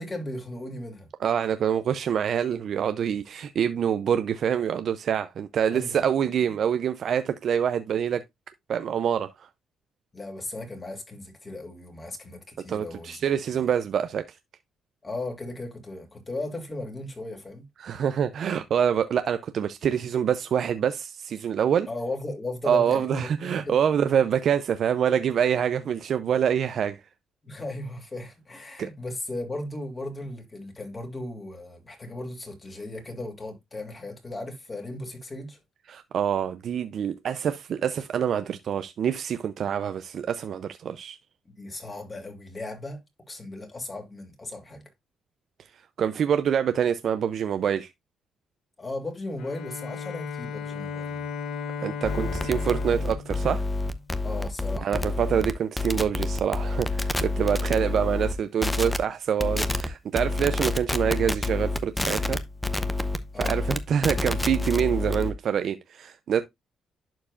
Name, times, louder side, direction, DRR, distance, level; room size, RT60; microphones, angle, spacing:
voice 1, 0.0-1.1 5.7-6.1 10.1-13.6 15.0-17.7 21.9-23.8 27.4-35.6 41.4-43.0 43.3-44.8 48.8-51.3 54.2-55.1 57.6-57.8 63.3-63.7, left 2 dB, 25° left, 3.0 m, -36 dB
voice 2, 1.2-8.2 8.7-9.5 12.7-14.2 17.8-21.9 22.6-27.0 28.8-28.9 35.9-41.2 46.0-47.9 51.8-53.6 54.8-62.4 63.4-66.4, right 8 dB, 60° right, 0.5 m, -26 dB
Bowed string instrument, 49.4-54.2, left 6 dB, 80° left, 1.1 m, -36 dB
sound 1, 52.0-58.3 58.6-59.0 59.4-59.9 60.1-65.3, left 2 dB, 10° left, 0.7 m, -28 dB
11.5 x 4.6 x 2.5 m
cardioid pair, 90°, 0 cm